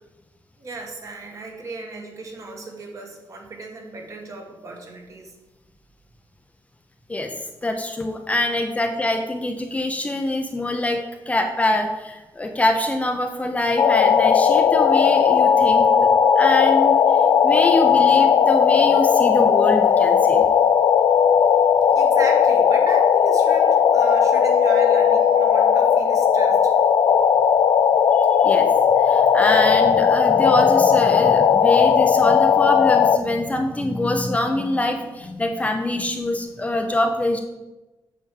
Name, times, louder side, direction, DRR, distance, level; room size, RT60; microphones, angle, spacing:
voice 1, 0.6-5.3 21.9-26.7, right 3 dB, 45° right, 1 dB, 1.5 m, -35 dB
voice 2, 7.6-16.1 16.4-20.5 28.1-28.7 29.0-37.4, left 1 dB, 20° left, 4 dB, 0.6 m, -24 dB
sound 1, 13.8-33.2, left 7 dB, 70° left, 0.4 m, -16 dB
8.3 x 3.4 x 6.6 m, 1.1 s
wide cardioid pair, 140°, 8 cm